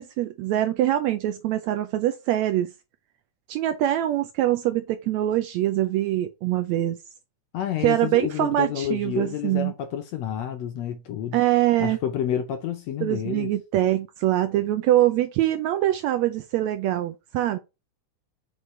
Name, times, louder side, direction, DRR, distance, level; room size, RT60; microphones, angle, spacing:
voice 1, 0.0-2.7 3.5-7.0 7.8-9.7 11.3-12.0 13.0-17.6, right 13 dB, 80° right, 1.6 m, -24 dB
voice 2, 7.5-11.4 11.8-13.5, left 10 dB, 75° left, 1.6 m, -29 dB
6.9 x 4.8 x 3.2 m
omnidirectional pair, 3.7 m